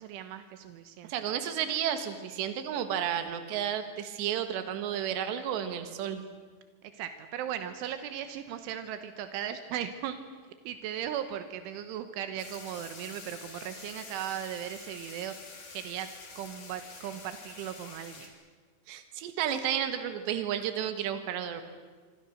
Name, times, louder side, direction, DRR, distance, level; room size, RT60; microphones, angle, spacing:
voice 1, 0.0-1.1 6.9-10.2 10.7-15.3 15.7-16.1 16.4-18.3, right 10 dB, 85° right, 9 dB, 3.6 m, -37 dB
voice 2, 1.1-6.2 18.9-21.6, right 9 dB, 70° right, 8 dB, 3.7 m, -32 dB
sound 1, 12.4-18.3, left 4 dB, 45° left, 4.3 m, -47 dB
26.0 x 25.5 x 6.5 m, 1.5 s
omnidirectional pair, 5.4 m